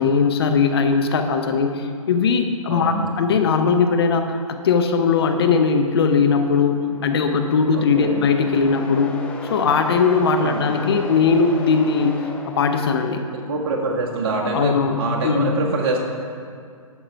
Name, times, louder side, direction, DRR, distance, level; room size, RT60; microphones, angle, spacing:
voice 1, 0.0-9.1 9.4-12.2 12.6-13.2 14.5-15.6, left 5 dB, 45° left, 6 dB, 0.8 m, -19 dB
voice 2, 2.7-3.1 7.7-8.2 10.4-10.6 13.5-16.0, right 3 dB, 40° right, -1 dB, 1.7 m, -25 dB
sound 1, 6.4-13.4, left 3 dB, 5° left, 0.4 m, -37 dB
11.5 x 7.4 x 4.7 m, 2.2 s
figure-of-eight pair, 125°, 18 cm